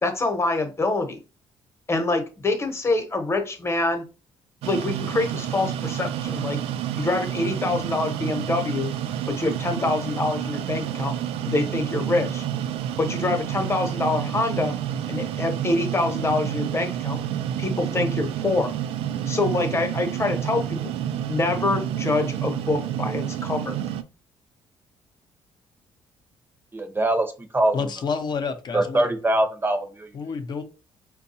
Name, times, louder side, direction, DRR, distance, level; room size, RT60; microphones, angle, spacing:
voice 1, 0.0-1.2 1.9-4.1 4.6-6.6 7.0-8.9 9.3-11.1 11.4-12.4 13.0-14.8 15.1-17.2 17.6-18.7 19.3-20.8 21.3-23.8, left 2 dB, 30° left, 0.9 m, -25 dB
sound 1, 4.6-24.0, right 10 dB, 90° right, 0.4 m, -29 dB
voice 2, 26.7-27.8 28.7-30.1, right 1 dB, 20° right, 0.6 m, -23 dB
voice 3, 27.7-29.1 30.1-30.6, left 5 dB, 50° left, 0.6 m, -29 dB
4.5 x 2.3 x 2.7 m
cardioid pair, 90°, 10 cm